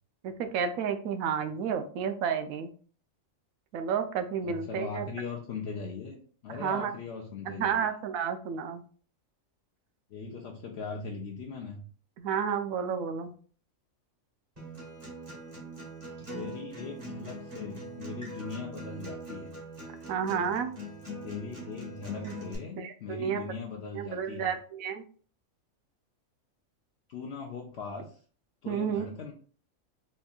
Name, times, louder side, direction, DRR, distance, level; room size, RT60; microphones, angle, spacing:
voice 1, 0.2-2.7 3.7-5.1 6.5-6.9 7.5-8.8 12.2-13.3 20.1-20.7 22.2-22.3 22.8-23.4 23.9-25.0 28.7-29.1, right 7 dB, 85° right, 8 dB, 1.0 m, -31 dB
voice 2, 4.4-7.9 10.1-11.8 16.3-19.5 21.2-24.6 27.1-28.2 28.6-29.3, left 5 dB, 60° left, -1 dB, 0.7 m, -40 dB
Acoustic guitar, 14.6-22.5, equal, 30° right, 1.2 m, -42 dB
4.3 x 2.8 x 2.3 m, 0.43 s
omnidirectional pair, 1.4 m